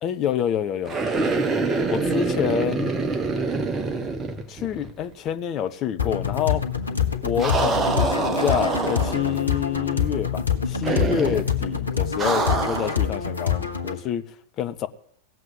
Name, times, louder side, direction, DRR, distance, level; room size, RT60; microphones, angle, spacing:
voice 1, 0.0-1.0 1.9-2.9 4.5-6.6 7.2-14.9, left 9 dB, 35° left, 0.9 m, -27 dB
sound 1, 0.9-5.0 5.3-5.4 7.4-9.4 10.8-11.5 12.2-13.0, right 4 dB, 20° right, 1.3 m, -25 dB
sound 2, 6.0-14.0, left 7 dB, 80° left, 1.3 m, -26 dB
17.0 x 7.7 x 9.5 m
figure-of-eight pair, 90°, 0 cm